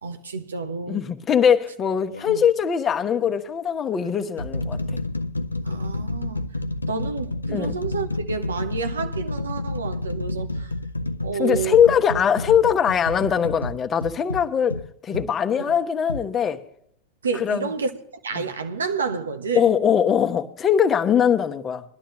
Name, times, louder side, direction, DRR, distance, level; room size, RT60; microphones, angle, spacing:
voice 1, 0.0-1.0 2.3-2.4 5.6-6.4 6.9-10.7 11.2-11.8 15.7-15.8 17.2-17.9 18.2-19.7, right 5 dB, 80° right, 0.8 m, -29 dB
voice 2, 0.9-5.0 7.5-7.8 11.4-16.6 17.4-17.7 18.4-18.5 19.6-21.8, left 8 dB, 30° left, 1.0 m, -21 dB
sound 1, 2.1-2.3 3.2-3.4 4.0-15.3 16.1-16.3, left 2 dB, 90° left, 0.4 m, -30 dB
20.5 x 11.5 x 3.1 m
figure-of-eight pair, 85°, 0 cm